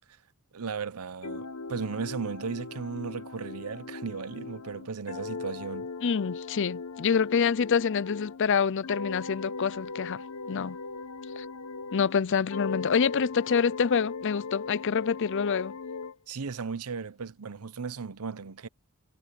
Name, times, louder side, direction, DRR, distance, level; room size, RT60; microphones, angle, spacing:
voice 1, 0.5-5.9 16.3-18.7, right 5 dB, 80° right, 0.7 m, -36 dB
sound 1, 1.2-8.4 8.8-12.2 12.5-16.2, left 4 dB, 80° left, 1.0 m, -39 dB
voice 2, 6.0-10.2 10.5-10.8 11.4-11.5 11.9-15.7, left 6 dB, 55° left, 0.5 m, -26 dB
head